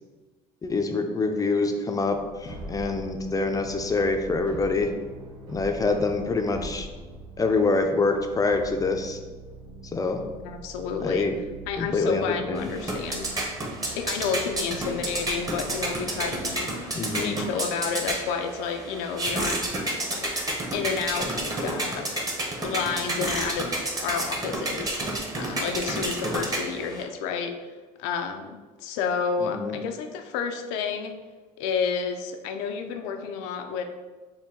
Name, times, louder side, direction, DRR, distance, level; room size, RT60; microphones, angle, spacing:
voice 1, 0.6-4.9 5.5-6.9 7.4-9.2 9.9-10.2 11.0-11.3 11.8-12.7 16.9-17.4 29.4-29.8, left 3 dB, 20° left, 5 dB, 0.4 m, -25 dB
sound 1, 2.0-16.6, right 2 dB, 90° right, 0.9 m, -43 dB
voice 2, 10.4-11.3 11.7-13.4 13.9-19.6 20.1-20.4 20.7-22.1 22.6-27.5 28.0-31.1 31.6-33.8, left 6 dB, 85° left, 5 dB, 0.5 m, -30 dB
sound 2, 12.6-27.0, right 1 dB, 20° right, 0.8 m, -30 dB
4.3 x 2.2 x 3.6 m, 1.3 s
supercardioid pair, 95°, 17 cm